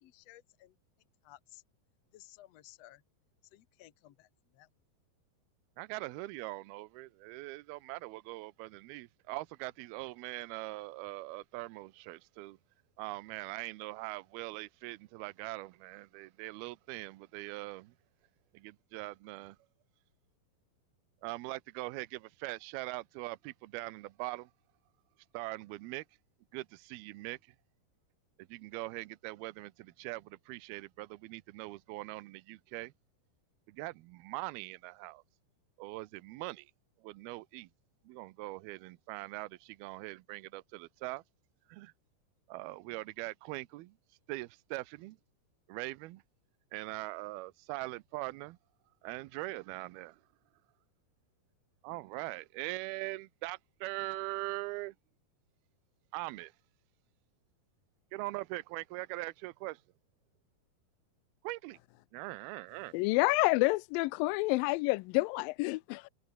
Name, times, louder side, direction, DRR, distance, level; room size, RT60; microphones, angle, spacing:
voice 1, 0.0-0.8 1.2-1.6 2.1-3.0 3.5-4.7, left 16 dB, 70° left, 1.6 m, -57 dB
voice 2, 5.8-12.6 13.0-17.9 18.5-19.6 21.2-24.5 25.3-26.0 26.5-27.4 28.5-32.9 33.7-35.2 35.8-36.7 37.0-37.7 38.1-41.2 41.7-41.9 42.5-43.9 44.3-45.2 45.7-46.2 46.7-48.6 49.0-50.2 51.8-54.9 56.1-56.5 58.1-59.8 61.4-61.8 62.1-62.9, right 21 dB, 80° right, 2.6 m, -42 dB
voice 3, 62.9-66.1, left 24 dB, 85° left, 2.0 m, -28 dB
omnidirectional pair, 4.5 m